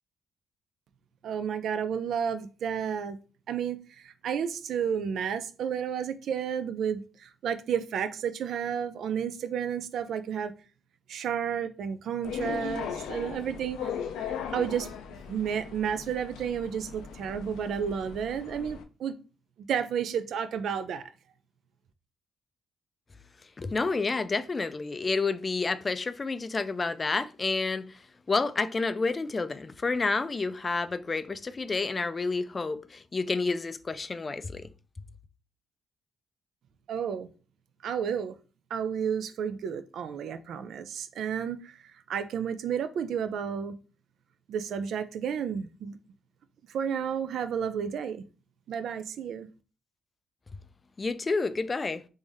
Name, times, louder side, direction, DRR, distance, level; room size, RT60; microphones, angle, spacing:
voice 1, 1.2-3.2 3.5-10.5 11.1-14.9 15.3-19.1 19.7-21.1 36.9-37.3 37.8-38.3 38.7-43.8 44.5-46.0 46.7-48.2 48.7-49.5, right 7 dB, 70° right, 0.4 m, -32 dB
sound 1, 12.2-18.8, left 7 dB, 90° left, 0.5 m, -38 dB
voice 2, 23.6-28.0 28.3-34.7 51.0-52.0, left 3 dB, 30° left, 0.3 m, -29 dB
3.4 x 2.7 x 3.4 m
cardioid pair, 90°, 0 cm